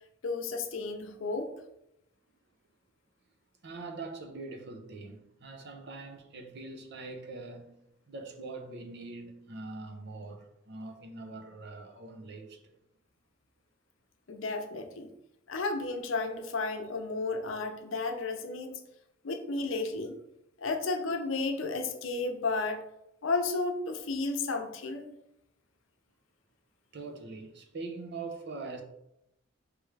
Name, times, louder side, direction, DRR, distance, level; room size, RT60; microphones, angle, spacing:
voice 1, 0.2-1.5 14.3-15.1 15.5-18.8 19.2-20.2 20.6-22.8 23.2-25.1, left 3 dB, 70° left, 0.6 m, -33 dB
voice 2, 3.6-7.8 8.1-12.8 26.9-28.8, right 3 dB, 55° right, 0.7 m, -43 dB
4.7 x 3.4 x 3.2 m
head